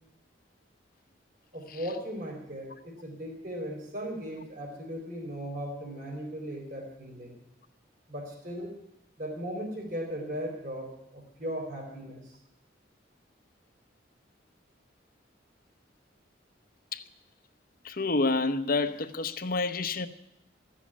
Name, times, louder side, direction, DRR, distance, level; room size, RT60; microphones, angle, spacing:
voice 1, 1.5-7.4 8.1-8.7 9.2-12.3, equal, 45° right, 4.1 m, -37 dB
voice 2, 17.8-20.1, left 3 dB, 50° left, 0.8 m, -28 dB
14.5 x 7.4 x 9.9 m
head